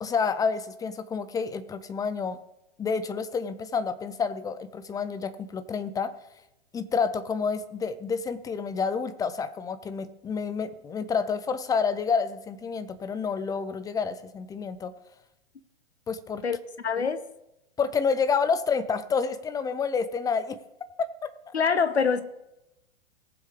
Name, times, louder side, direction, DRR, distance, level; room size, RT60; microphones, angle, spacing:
voice 1, 0.0-2.4 2.8-6.1 6.7-14.9 16.1-16.4 17.8-20.6 21.0-21.5, left 5 dB, 10° left, 13 dB, 0.5 m, -29 dB
voice 2, 16.8-17.3 21.5-22.2, left 5 dB, 90° left, 13 dB, 1.0 m, -24 dB
19.0 x 7.4 x 3.3 m, 0.91 s
hypercardioid pair, 115°, 32 cm